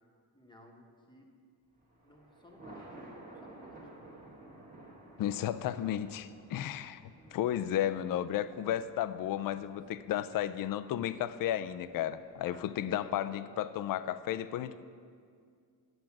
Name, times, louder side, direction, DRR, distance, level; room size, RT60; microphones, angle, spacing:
voice 1, 0.3-1.3 2.0-3.1 3.4-4.1 9.7-9.8 12.4-13.6, left 1 dB, 10° left, 1 dB, 1.1 m, -58 dB
Thunder, 1.8-13.1, right 1 dB, 20° right, 1.5 m, -54 dB
voice 2, 5.2-7.0 7.3-14.8, left 11 dB, 50° left, 13 dB, 0.4 m, -33 dB
9.0 x 7.9 x 7.2 m, 2.2 s
cardioid pair, 150°, 44 cm